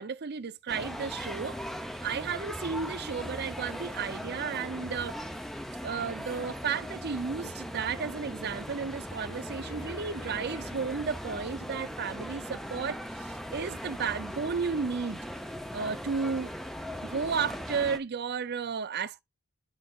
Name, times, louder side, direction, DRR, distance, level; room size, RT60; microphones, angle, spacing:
voice 1, 0.0-1.6 2.0-5.2 5.8-15.2 15.7-16.5 17.0-19.2, right 5 dB, 50° right, 0.5 m, -33 dB
sound 1, 0.7-18.0, equal, ahead, 0.6 m, -39 dB
Wind instrument woodwind instrument, 7.8-12.6, left 7 dB, 60° left, 1.0 m, -54 dB
11.5 x 5.0 x 2.4 m
head